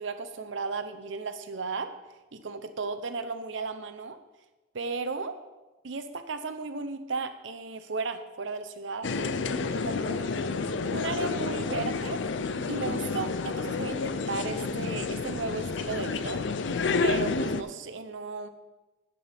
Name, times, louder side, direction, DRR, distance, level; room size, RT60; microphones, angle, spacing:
voice 1, 0.0-1.9 2.3-4.2 4.7-5.3 5.8-10.4 10.9-12.2 12.7-16.4 17.0-18.5, right 4 dB, 70° right, 9 dB, 0.7 m, -35 dB
sound 1, 9.0-17.6, left 4 dB, 65° left, 0.5 m, -30 dB
9.5 x 9.3 x 3.5 m, 1.1 s
head